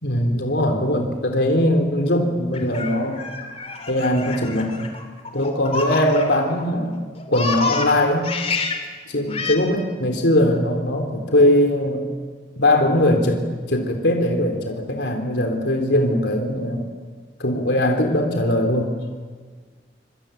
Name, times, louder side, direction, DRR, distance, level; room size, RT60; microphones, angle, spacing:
voice 1, 0.0-3.2 3.9-4.9 5.3-7.0 7.3-8.2 9.1-12.1 12.6-13.4 13.7-16.8 17.4-18.9, left 1 dB, 85° left, 4 dB, 3.6 m, -20 dB
Laughter, 2.5-6.6 6.9-8.8 9.3-9.6, left 3 dB, 35° left, 3.3 m, -28 dB
25.5 x 24.0 x 9.1 m, 1.5 s
head